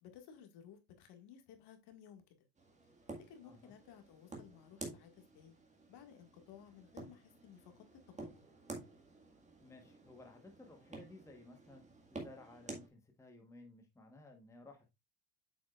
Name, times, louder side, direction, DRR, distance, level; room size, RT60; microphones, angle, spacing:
voice 1, 0.0-2.4 3.2-5.6 5.9-8.4, left 8 dB, 50° left, 2.0 m, -57 dB
sound 1, 2.6-12.9, right 2 dB, 15° right, 1.9 m, -51 dB
voice 2, 9.6-11.8 12.1-14.9, left 2 dB, 5° left, 1.2 m, -57 dB
8.2 x 6.1 x 2.4 m
supercardioid pair, 125°, 49 cm